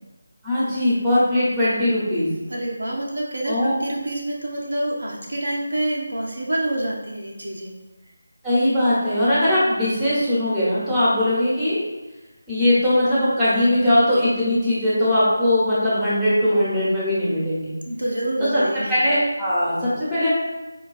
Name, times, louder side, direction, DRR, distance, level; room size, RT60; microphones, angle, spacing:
voice 1, 0.4-2.3 3.4-3.7 8.4-11.8 12.5-17.7 18.5-18.6 18.9-20.3, left 1 dB, 5° right, -10 dB, 0.9 m, -20 dB
voice 2, 2.5-7.8 17.9-18.9, right 1 dB, 60° right, -1 dB, 0.5 m, -27 dB
4.5 x 2.2 x 2.4 m, 1.1 s
figure-of-eight pair, 160°, 0 cm